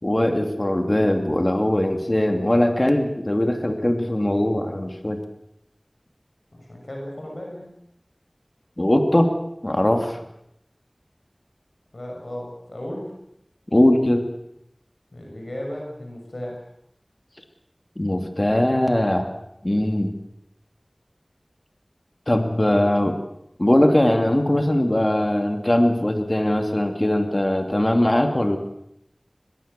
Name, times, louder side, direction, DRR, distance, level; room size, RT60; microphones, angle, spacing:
voice 1, 0.0-5.2 8.8-9.3 9.6-10.2 13.7-14.2 18.0-19.3 19.6-20.1 22.3-23.1 23.6-28.6, left 1 dB, 40° left, 5 dB, 2.7 m, -20 dB
voice 2, 6.5-7.7 11.9-13.1 15.1-16.6 22.6-22.9, left 1 dB, 80° left, 0 dB, 6.6 m, -35 dB
23.0 x 21.5 x 6.8 m, 0.77 s
wide cardioid pair, 40°, 0 cm